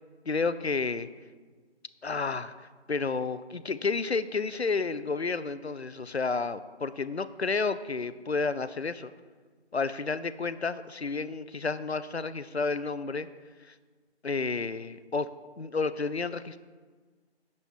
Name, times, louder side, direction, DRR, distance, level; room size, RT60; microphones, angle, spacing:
voice 1, 0.3-1.1 2.0-9.1 9.7-13.3 13.6-13.8 14.2-16.6, left 4 dB, 65° left, 15 dB, 0.5 m, -31 dB
10.5 x 4.4 x 7.2 m, 1.5 s
figure-of-eight pair, 180°, 34 cm